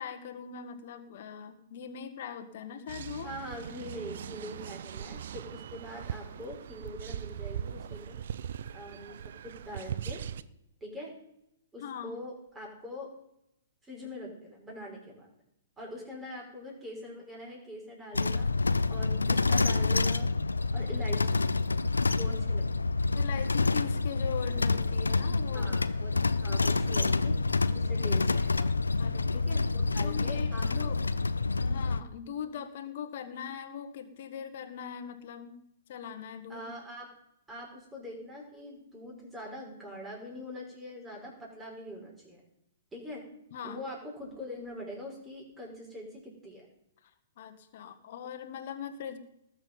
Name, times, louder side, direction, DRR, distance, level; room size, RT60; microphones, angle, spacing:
voice 1, 0.0-3.3 11.8-12.1 23.1-25.7 29.0-29.4 30.0-31.0 31.6-35.6 35.9-36.6 43.5-43.8 47.0-47.1 47.4-49.2, left 8 dB, 50° left, 8 dB, 1.7 m, -40 dB
sound 1, 2.9-10.4, right 9 dB, 55° right, 0.6 m, -40 dB
voice 2, 3.2-8.2 8.7-9.2 9.4-10.2 10.8-11.1 11.7-13.1 13.8-15.3 15.8-18.5 18.9-20.3 20.7-21.5 22.1-22.7 25.5-26.1 26.4-27.3 27.7-28.7 29.3-30.9 36.5-37.1 37.5-42.4 42.9-43.2 43.6-46.7, left 1 dB, 10° right, -1 dB, 5.5 m, -43 dB
sound 2, 18.1-32.0, left 3 dB, 80° left, 0.6 m, -27 dB
19.5 x 7.3 x 5.5 m, 0.81 s
figure-of-eight pair, 115°, 0 cm